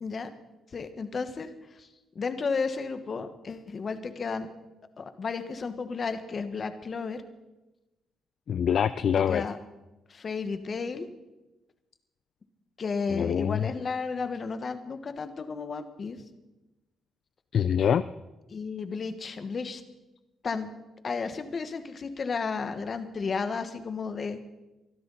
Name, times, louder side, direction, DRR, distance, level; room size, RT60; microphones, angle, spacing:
voice 1, 0.0-0.4 0.7-1.5 1.8-1.9 2.1-4.5 5.0-7.2 9.3-9.6 10.1-11.1 12.8-16.2 18.5-19.8 20.4-20.7 21.0-24.4, left 5 dB, 40° left, 9 dB, 1.5 m, -33 dB
voice 2, 8.5-9.4 13.1-13.7 17.5-18.0, left 8 dB, 60° left, 13 dB, 0.4 m, -25 dB
23.5 x 12.5 x 4.2 m, 1.0 s
cardioid pair, 90°, 0 cm